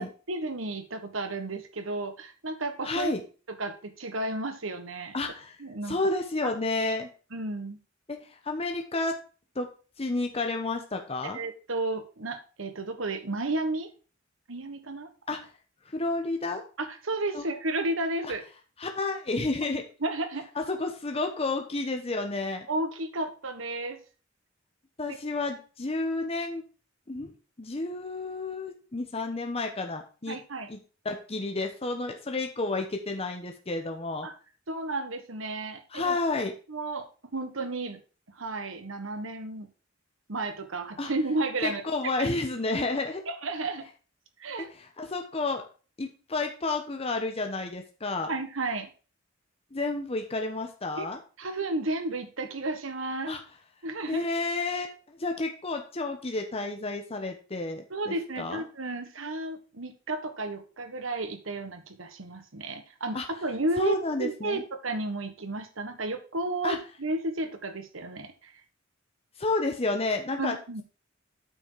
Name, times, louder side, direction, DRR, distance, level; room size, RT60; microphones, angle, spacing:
voice 1, 0.0-3.1 3.5-5.1 5.6-6.0 6.4-6.5 7.3-7.8 11.3-13.9 14.5-15.1 16.8-18.4 20.0-20.5 22.7-24.0 25.0-25.2 30.3-30.7 34.2-34.3 34.7-36.2 36.7-38.0 38.3-39.7 40.3-42.3 43.3-43.9 44.4-44.7 48.3-48.9 51.0-51.1 51.4-53.3 53.8-54.2 57.9-68.5 70.4-70.8, right 2 dB, 75° right, 8 dB, 1.4 m, -33 dB
voice 2, 2.8-3.2 5.1-5.6 5.9-7.1 8.1-8.2 8.4-9.2 9.5-9.7 10.0-11.4 15.3-15.4 15.9-16.6 17.3-17.4 18.8-19.8 20.6-22.7 25.0-26.6 27.1-27.3 27.6-30.4 30.7-30.8 31.0-34.3 35.9-36.5 41.0-41.1 41.6-43.2 44.8-45.6 46.0-48.3 49.7-51.2 53.3-53.4 54.1-58.6 63.1-63.3 63.8-64.6 66.6-66.8 69.4-70.5, left 2 dB, 30° left, 4 dB, 1.0 m, -30 dB
8.6 x 6.3 x 4.7 m, 0.36 s
head